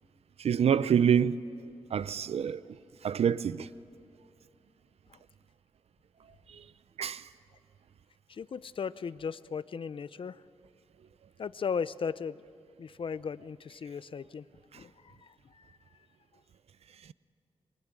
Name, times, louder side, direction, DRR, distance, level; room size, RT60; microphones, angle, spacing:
voice 1, 0.4-1.4 1.9-2.6 3.0-3.7 6.5-6.6 7.0-7.3, right 8 dB, 75° right, 0.6 m, -26 dB
voice 2, 8.4-10.4 11.4-12.4 12.8-14.4 14.7-15.2, left 6 dB, 55° left, 0.6 m, -36 dB
25.5 x 23.0 x 9.0 m
wide cardioid pair, 100°, 10 cm